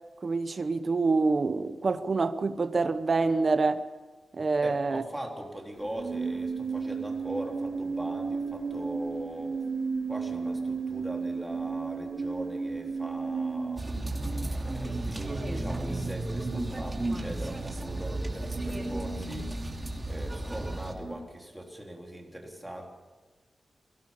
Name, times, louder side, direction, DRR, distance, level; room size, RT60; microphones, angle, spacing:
voice 1, 0.2-3.8 4.3-5.0, right 3 dB, 45° right, 10 dB, 1.0 m, -26 dB
voice 2, 4.6-9.5 10.1-14.0 14.6-19.5 20.1-22.9, right 1 dB, 5° right, 0 dB, 3.6 m, -40 dB
sound 1, 5.8-14.4 17.7-17.8 18.4-20.0 20.3-21.2, right 4 dB, 70° right, 3.7 m, -34 dB
sound 2, 13.8-20.9, right 2 dB, 20° right, 2.9 m, -33 dB
23.5 x 17.5 x 7.2 m, 1.3 s
wide cardioid pair, 125°, 0 cm